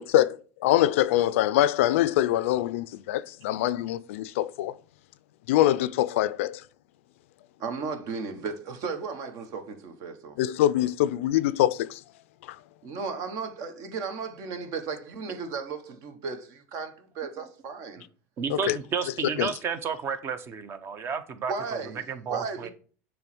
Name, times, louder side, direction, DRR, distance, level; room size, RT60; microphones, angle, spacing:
voice 1, 0.0-4.7 5.5-6.6 10.4-12.0 12.5-12.6 18.5-18.8 19.4-19.5, left 13 dB, 80° left, 0.4 m, -24 dB
voice 2, 7.6-10.5 12.8-18.0 18.6-18.7 21.5-22.7, right 5 dB, 55° right, 1.3 m, -35 dB
voice 3, 18.4-21.5 22.1-22.7, right 6 dB, 35° right, 0.9 m, -31 dB
7.0 x 3.2 x 6.1 m
supercardioid pair, 115°, 7 cm